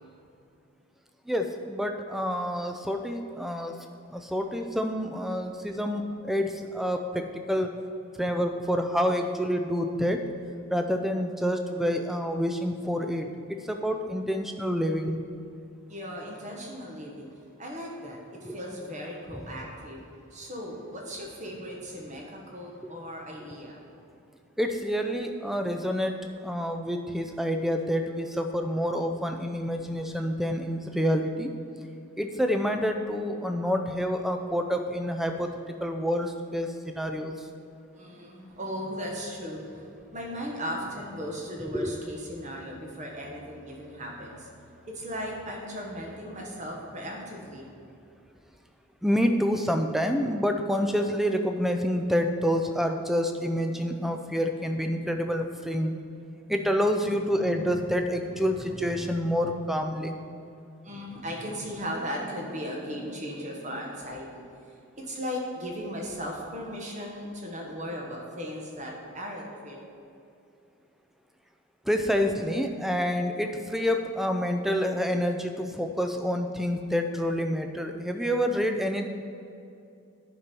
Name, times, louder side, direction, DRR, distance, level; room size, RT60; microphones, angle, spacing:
voice 1, 1.3-3.8 4.1-7.7 8.2-10.2 10.7-15.2 18.4-18.6 19.4-19.5 22.8-22.9 24.6-31.5 32.2-35.5 35.8-37.3 41.7-42.0 49.0-55.9 56.5-60.2 71.9-79.1, equal, ahead, 5 dB, 0.4 m, -28 dB
voice 2, 15.9-17.3 17.6-20.0 20.3-23.8 37.9-44.5 44.8-47.7 53.7-55.1 56.4-56.5 56.8-57.8 58.2-59.2 60.8-64.5 65.0-69.9, equal, 35° right, -1 dB, 1.3 m, -37 dB
11.0 x 5.3 x 4.4 m, 2.6 s
head